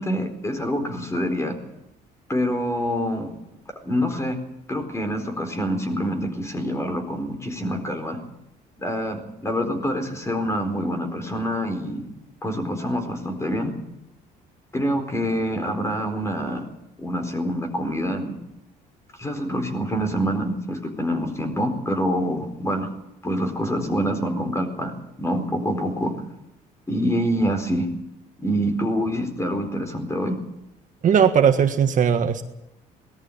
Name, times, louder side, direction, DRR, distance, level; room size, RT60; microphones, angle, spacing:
voice 1, 0.0-1.6 2.3-3.3 3.8-4.4 4.7-8.2 8.8-12.0 12.4-13.7 14.7-16.6 17.0-18.4 19.2-22.9 23.2-24.9 25.2-26.2 26.9-27.9 28.4-30.4, equal, 15° left, 6 dB, 4.3 m, -26 dB
voice 2, 31.0-32.4, right 8 dB, 50° right, 7 dB, 1.6 m, -18 dB
19.5 x 13.5 x 9.9 m, 0.89 s
cardioid pair, 110°, 17 cm